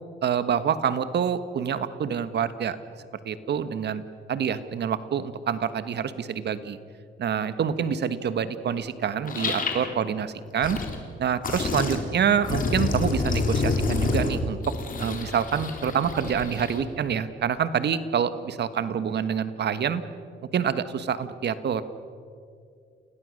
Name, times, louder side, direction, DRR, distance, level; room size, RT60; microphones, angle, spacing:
voice 1, 0.2-2.8 3.2-6.8 7.2-10.8 11.2-14.6 15.0-20.0 20.5-21.8, right 7 dB, 60° right, 12 dB, 1.4 m, -27 dB
sound 1, 8.7-8.8 9.2-9.9 10.4-10.9 11.4-12.0 12.4-16.8, left 3 dB, 45° left, 3.7 m, -28 dB
30.0 x 18.0 x 6.5 m, 2.3 s
cardioid pair, 90°, 20 cm